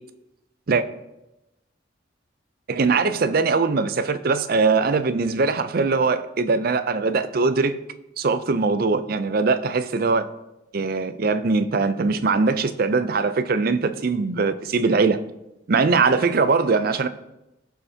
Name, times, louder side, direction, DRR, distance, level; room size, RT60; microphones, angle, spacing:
voice 1, 2.7-7.8 8.2-10.3 10.7-15.2 15.7-17.1, right 4 dB, 50° right, 11 dB, 0.5 m, -21 dB
16.0 x 5.6 x 2.8 m, 0.95 s
head